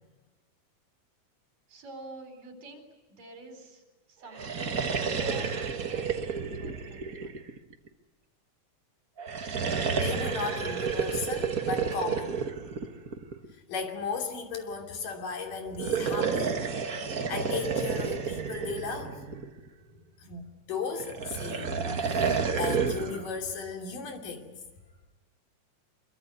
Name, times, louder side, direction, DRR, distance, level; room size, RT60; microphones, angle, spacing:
voice 1, 1.7-3.8 4.1-7.4, right 2 dB, 75° right, 5 dB, 5.7 m, -48 dB
sound 1, 4.3-7.9 9.2-13.5 15.7-19.7 21.0-23.3, right 6 dB, 50° right, 1.0 m, -30 dB
voice 2, 9.9-12.4 13.7-16.6 17.3-19.2 20.2-24.5, left 5 dB, 70° left, 3 dB, 4.5 m, -36 dB
25.0 x 23.5 x 9.7 m, 1.2 s
omnidirectional pair, 3.9 m